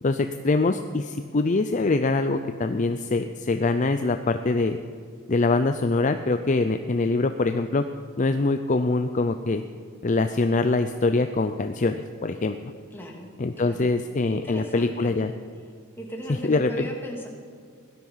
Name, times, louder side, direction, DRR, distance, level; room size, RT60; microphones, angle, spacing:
voice 1, 0.0-4.8 5.3-7.9 8.2-9.6 10.0-12.7 13.4-15.3 16.4-16.9, left 3 dB, 35° left, 8 dB, 0.5 m, -24 dB
voice 2, 12.9-13.3 13.6-13.9 14.3-15.2 16.0-17.3, equal, 10° left, -1 dB, 2.4 m, -36 dB
17.0 x 12.5 x 5.7 m, 2.2 s
head